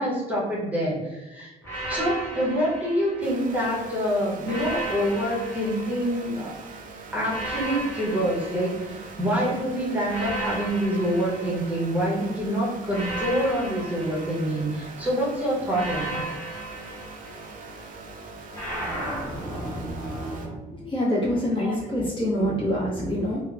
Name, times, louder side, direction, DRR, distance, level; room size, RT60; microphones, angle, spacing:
voice 1, 0.0-1.5 1.9-6.5 7.1-16.2 21.6-21.8, equal, 10° right, -6 dB, 1.0 m, -26 dB
sound 1, 1.6-3.8 4.4-6.6 7.3-9.4 10.0-12.2 12.9-15.0 15.7-17.9 18.5-20.6, right 2 dB, 15° left, 1.0 m, -35 dB
sound 2, 3.2-20.5, right 3 dB, 50° right, 0.5 m, -42 dB
voice 2, 20.7-23.4, equal, 30° left, -6 dB, 0.9 m, -25 dB
2.8 x 2.1 x 2.5 m, 1.1 s
cardioid pair, 110°, 17 cm